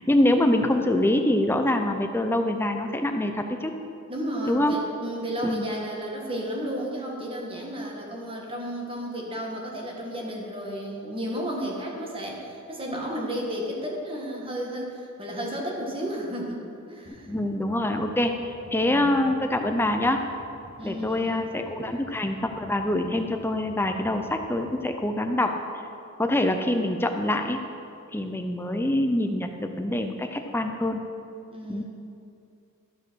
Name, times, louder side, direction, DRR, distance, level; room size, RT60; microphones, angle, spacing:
voice 1, 0.0-3.7 4.5-4.8 5.4-5.7 17.3-20.2 20.8-25.5 26.2-27.6 28.1-31.0 31.7-31.8, left 1 dB, 10° left, 5 dB, 0.6 m, -25 dB
voice 2, 4.1-17.3 18.8-19.1 20.8-21.4 31.5-31.8, equal, 25° right, -1 dB, 1.7 m, -33 dB
sound 1, 17.0-25.0, equal, 90° right, 2.2 m, -50 dB
13.0 x 5.4 x 6.3 m, 2.5 s
head